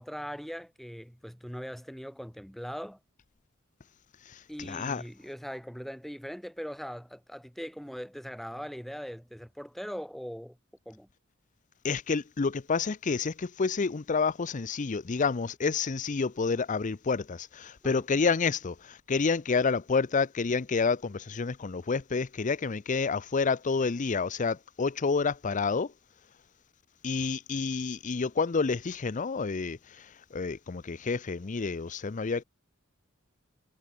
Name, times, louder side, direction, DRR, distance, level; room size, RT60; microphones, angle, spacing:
voice 1, 0.0-3.0 4.5-10.6 10.9-11.1 17.8-18.0, equal, ahead, 2.1 m, -40 dB
voice 2, 4.3-5.0 11.8-25.9 27.0-32.4, left 4 dB, 40° left, 0.5 m, -29 dB
head